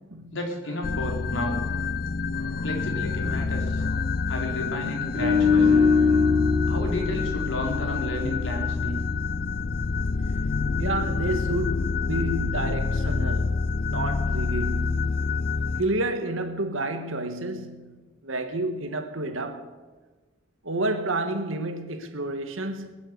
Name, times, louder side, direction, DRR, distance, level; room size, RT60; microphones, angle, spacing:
voice 1, 0.3-1.6 2.6-3.8 4.3-5.8 6.7-9.0, left 1 dB, 75° left, 3.9 m, -32 dB
sound 1, 0.8-15.8, left 4 dB, 45° left, 0.5 m, -27 dB
voice 2, 2.3-3.5 3.8-4.2 10.8-15.3 15.8-19.8 20.6-22.9, right 2 dB, 85° right, 1.6 m, -31 dB
sound 2, 5.1-8.4 8.7-9.0, left 5 dB, 65° right, 2.6 m, -23 dB
21.0 x 8.0 x 8.1 m
head